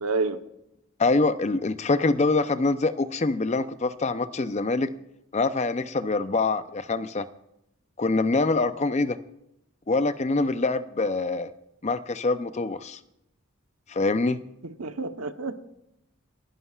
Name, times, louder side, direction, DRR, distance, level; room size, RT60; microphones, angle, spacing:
voice 1, 0.0-0.4 14.6-15.6, right 3 dB, 85° right, 8 dB, 1.0 m, -29 dB
voice 2, 1.0-4.9 5.3-7.3 8.0-9.2 9.9-11.5 11.8-13.0 13.9-14.4, left 3 dB, 30° left, 12 dB, 0.5 m, -25 dB
30.0 x 11.0 x 2.4 m, 0.84 s
head